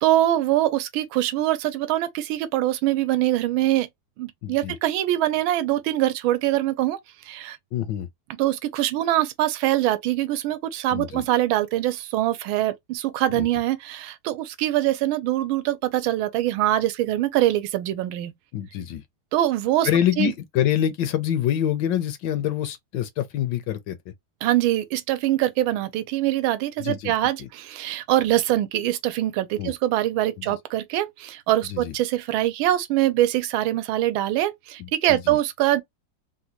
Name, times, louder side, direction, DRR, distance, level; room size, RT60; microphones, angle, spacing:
voice 1, 0.0-3.9 4.2-7.0 7.2-7.6 8.4-18.3 19.3-19.9 20.2-20.3 24.4-35.8, right 14 dB, 85° right, 1.4 m, -23 dB
voice 2, 4.4-4.8 7.7-8.1 10.9-11.2 13.3-13.5 18.5-19.0 19.8-24.1 26.8-27.1 27.4-27.5 29.6-29.7 30.4-30.5 31.7-31.9 34.8-35.4, left 10 dB, 75° left, 1.1 m, -26 dB
3.8 x 2.2 x 2.8 m
omnidirectional pair, 2.2 m